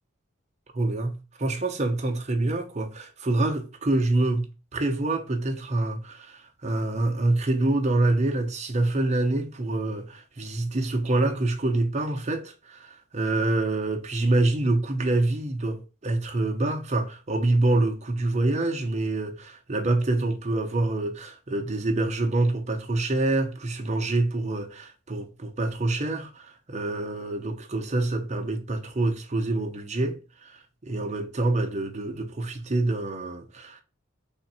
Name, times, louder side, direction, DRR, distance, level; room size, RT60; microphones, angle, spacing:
voice 1, 0.7-30.5 30.8-33.8, right 2 dB, 35° right, 0.6 m, -26 dB
3.6 x 2.5 x 4.1 m
head